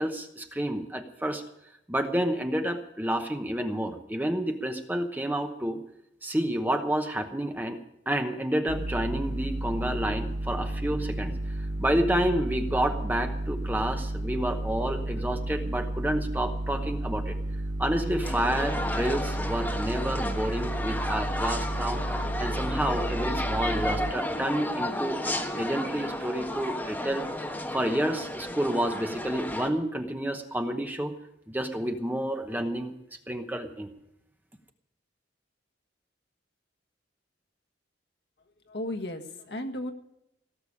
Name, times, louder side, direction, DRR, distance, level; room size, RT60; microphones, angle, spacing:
voice 1, 0.0-1.4 1.9-5.8 6.2-7.8 8.1-11.3 11.8-17.4 17.8-22.0 22.4-27.2 27.7-31.1 31.5-32.9 33.3-33.9, right 1 dB, 10° right, 5 dB, 0.9 m, -29 dB
sound 1, 8.7-24.1, right 1 dB, 40° right, 0.8 m, -32 dB
sound 2, 18.2-29.7, left 1 dB, 10° left, 1.3 m, -33 dB
voice 2, 38.7-39.9, left 1 dB, 65° left, 4 dB, 1.6 m, -34 dB
17.0 x 6.9 x 9.7 m, 0.81 s
head